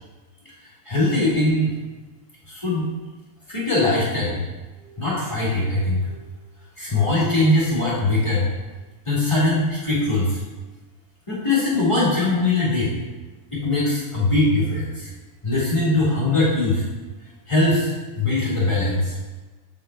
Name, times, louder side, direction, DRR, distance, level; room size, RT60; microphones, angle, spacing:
voice 1, 0.8-1.8 2.5-2.9 3.5-4.4 4.8-6.2 6.8-8.5 9.0-10.4 11.3-12.9 13.5-15.1 15.4-16.8 17.5-19.2, left 2 dB, 20° left, -8 dB, 1.8 m, -21 dB
6.9 x 6.6 x 2.2 m, 1.2 s
omnidirectional pair, 1.4 m